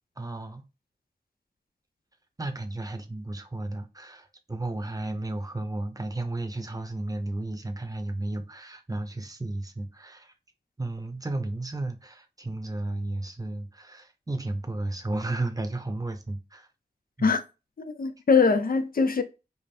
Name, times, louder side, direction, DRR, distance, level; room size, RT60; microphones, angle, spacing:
voice 1, 0.2-0.6 2.4-10.3 10.8-16.7 17.2-17.3, right 2 dB, 20° right, 0.8 m, -33 dB
voice 2, 17.8-19.2, left 5 dB, 55° left, 0.6 m, -22 dB
5.1 x 2.5 x 2.6 m
wide cardioid pair, 65°, 17 cm